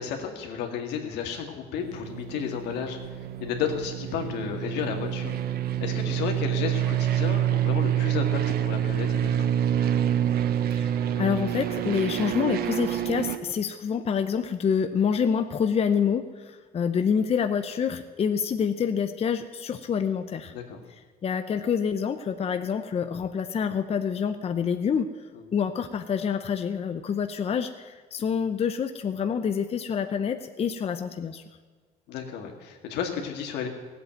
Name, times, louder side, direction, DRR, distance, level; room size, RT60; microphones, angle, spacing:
voice 1, 0.0-5.4 5.8-9.6 20.5-20.8 25.3-25.5 32.1-33.7, left 7 dB, 85° left, 3 dB, 2.1 m, -33 dB
sound 1, 1.8-13.4, right 10 dB, 65° right, 0.9 m, -27 dB
voice 2, 10.8-20.5 21.2-25.1 25.5-31.4, left 7 dB, 35° left, 8 dB, 0.7 m, -27 dB
15.5 x 8.2 x 8.9 m, 1.4 s
cardioid pair, 110°, 17 cm